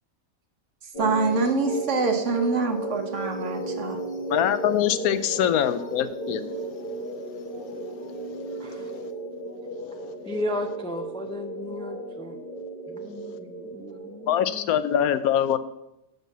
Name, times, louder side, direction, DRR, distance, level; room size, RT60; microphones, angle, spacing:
sound 1, 0.9-14.4, right 2 dB, 35° left, 1.5 m, -34 dB
voice 1, 1.0-4.0, right 3 dB, 60° right, 5 dB, 1.3 m, -25 dB
voice 2, 4.3-6.4 14.3-15.6, left 10 dB, 85° left, 13 dB, 1.1 m, -23 dB
voice 3, 10.3-12.4 13.0-14.7, left 1 dB, 5° left, 4 dB, 0.4 m, -34 dB
7.5 x 5.4 x 7.3 m, 0.86 s
omnidirectional pair, 1.5 m